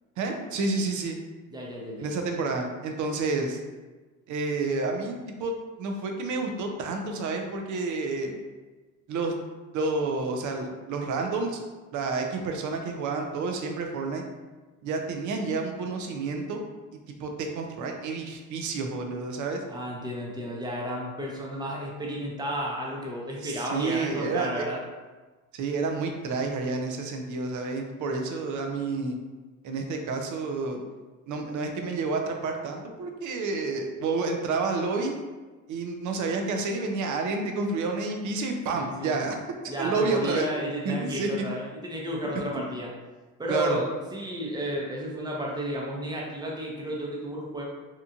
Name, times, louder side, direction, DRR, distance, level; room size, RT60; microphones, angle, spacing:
voice 1, 0.2-1.2 2.0-3.6 4.3-8.3 9.1-9.3 9.7-11.6 11.9-14.3 14.8-16.6 17.2-19.6 23.4-24.7 25.5-29.2 29.6-30.8 31.3-35.1 35.7-39.4 39.8-40.5 40.8-41.3 43.5-43.8, right 3 dB, 50° right, 3 dB, 0.6 m, -29 dB
voice 2, 1.5-2.1 19.7-24.8 38.7-39.1 39.7-42.9 43.4-47.6, equal, 10° right, -2 dB, 0.7 m, -32 dB
2.9 x 2.4 x 2.3 m, 1.3 s
supercardioid pair, 70°, 40 cm